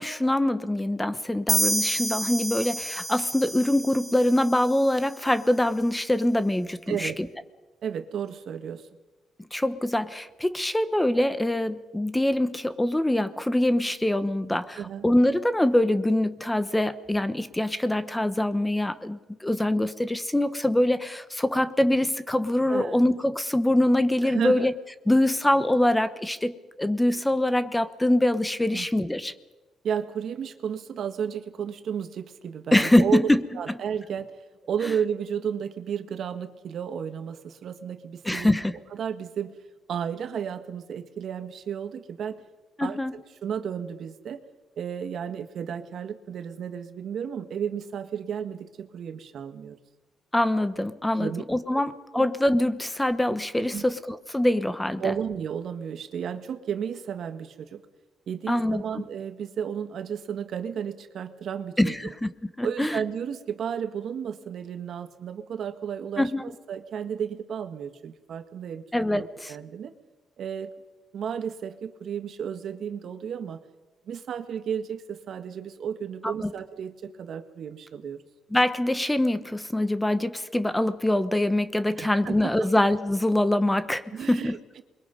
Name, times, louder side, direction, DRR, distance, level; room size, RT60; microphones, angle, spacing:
voice 1, 0.0-7.1 9.5-24.7 25.1-29.3 32.7-33.4 38.2-38.7 42.8-43.2 50.3-55.1 58.5-58.8 61.8-62.3 62.6-63.0 66.2-66.4 68.9-69.5 76.2-76.5 78.5-84.6, left 1 dB, 10° left, 12 dB, 1.1 m, -24 dB
sound 1, 1.5-5.1, equal, 10° right, 1.8 m, -29 dB
voice 2, 6.9-7.2 7.8-8.9 14.8-15.0 22.7-23.0 24.2-24.7 28.7-28.9 29.8-34.3 34.7-38.5 38.9-39.5 39.9-42.4 42.8-43.0 43.4-44.4 44.8-49.8 51.2-51.4 51.7-51.8 52.1-52.3 53.6-53.8 55.0-57.8 58.3-62.1 62.6-68.8 69.1-69.9 70.4-70.7 71.1-73.6 74.1-78.2 82.0-82.5 84.1-84.8, right 8 dB, 65° right, 8 dB, 1.7 m, -33 dB
28.0 x 22.5 x 5.3 m, 1.1 s
cardioid pair, 90°, 0 cm